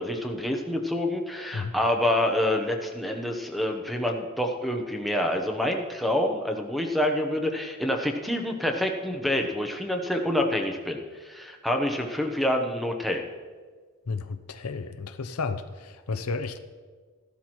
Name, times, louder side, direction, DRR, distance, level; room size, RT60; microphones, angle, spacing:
voice 1, 0.0-13.2, left 1 dB, ahead, 2 dB, 0.8 m, -27 dB
voice 2, 14.1-16.6, left 4 dB, 85° left, 9 dB, 0.7 m, -32 dB
14.5 x 12.0 x 3.1 m, 1.5 s
head